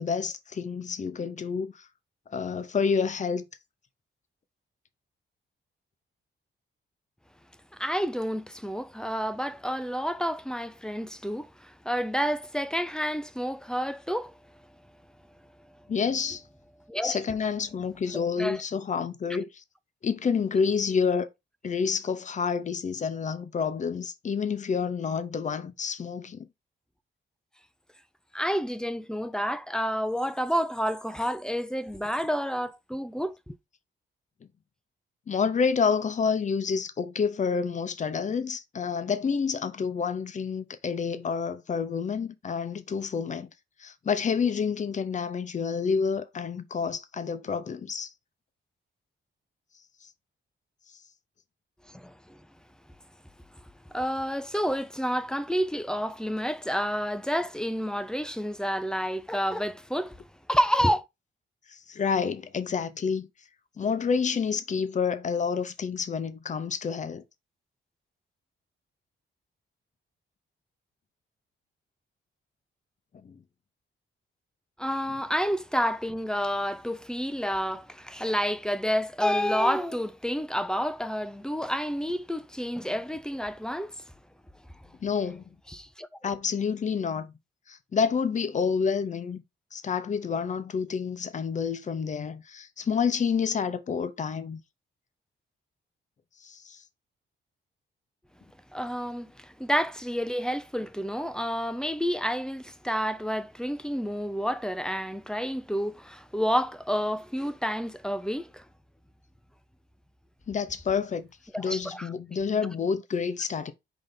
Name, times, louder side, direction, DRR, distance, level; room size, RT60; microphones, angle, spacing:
voice 1, 0.0-1.9 2.3-3.4 15.9-16.4 17.0-19.6 20.0-21.3 21.6-26.5 35.3-43.5 43.8-48.1 61.7-63.3 63.8-67.2 73.2-73.4 85.0-85.4 86.2-87.3 87.7-89.4 89.7-94.6 96.4-96.8 110.5-111.3 111.6-113.7, left 6 dB, 35° left, 0.7 m, -28 dB
voice 2, 7.7-14.3 16.9-17.2 18.1-18.6 28.3-33.5 51.9-52.4 53.9-60.2 60.5-61.1 74.8-83.9 85.7-86.1 98.7-108.6 111.5-112.1, equal, 5° left, 0.4 m, -29 dB
5.3 x 3.4 x 5.6 m
wide cardioid pair, 145°, 21 cm